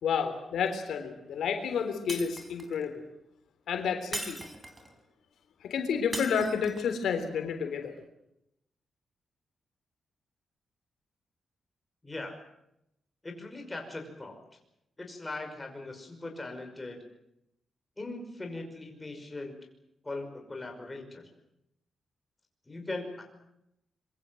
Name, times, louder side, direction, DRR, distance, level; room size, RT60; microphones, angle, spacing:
voice 1, 0.0-3.0 3.7-4.4 5.6-7.9, left 6 dB, 80° left, 6 dB, 3.6 m, -30 dB
Shatter, 2.1-2.8 4.1-4.9 6.1-6.9, right 1 dB, 15° right, 4.2 m, -39 dB
voice 2, 12.0-12.4 13.2-14.4 15.0-17.0 18.0-19.5 20.0-21.2 22.7-23.3, left 2 dB, 15° left, 3 dB, 5.6 m, -39 dB
25.5 x 23.0 x 7.8 m, 0.83 s
wide cardioid pair, 135°, 0 cm